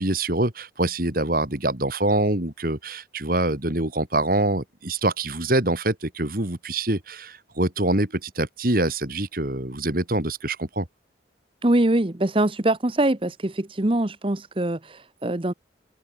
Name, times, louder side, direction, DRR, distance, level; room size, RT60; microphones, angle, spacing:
voice 1, 0.0-10.9, right 2 dB, 50° right, 2.8 m, -25 dB
voice 2, 11.6-15.5, right 1 dB, 30° right, 1.0 m, -23 dB
head